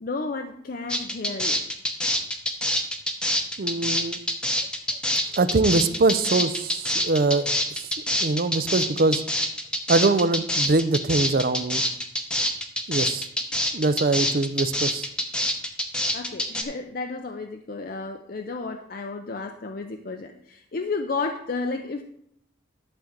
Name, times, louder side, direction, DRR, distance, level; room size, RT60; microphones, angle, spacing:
voice 1, 0.0-1.6 16.1-22.0, left 3 dB, 50° left, 5 dB, 0.5 m, -32 dB
sound 1, 0.9-16.6, left 1 dB, 5° left, 0.8 m, -25 dB
voice 2, 3.6-4.2 5.4-7.5 8.2-9.2 9.9-11.8 12.9-13.3 13.7-15.1, right 3 dB, 50° right, 13 dB, 0.5 m, -23 dB
11.5 x 3.9 x 7.3 m, 0.74 s
head